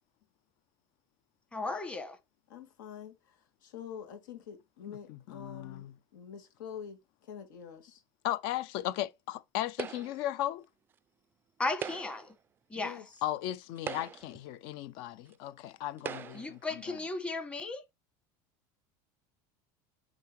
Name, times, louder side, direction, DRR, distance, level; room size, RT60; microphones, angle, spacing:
voice 1, 1.5-2.2 11.6-12.3 12.7-13.0 16.3-17.8, left 3 dB, 10° left, 1.2 m, -35 dB
voice 2, 2.5-5.8 6.1-8.0 12.7-13.2, left 8 dB, 90° left, 2.5 m, -46 dB
voice 3, 5.1-5.9 8.2-10.6 13.2-16.6 16.9-17.0, left 13 dB, 60° left, 0.5 m, -36 dB
sound 1, 9.8-10.3 11.7-12.3 13.2-13.3 13.8-14.4 15.3-15.4 16.0-16.6, right 8 dB, 20° right, 0.3 m, -40 dB
9.2 x 3.7 x 3.0 m
supercardioid pair, 145°, 10 cm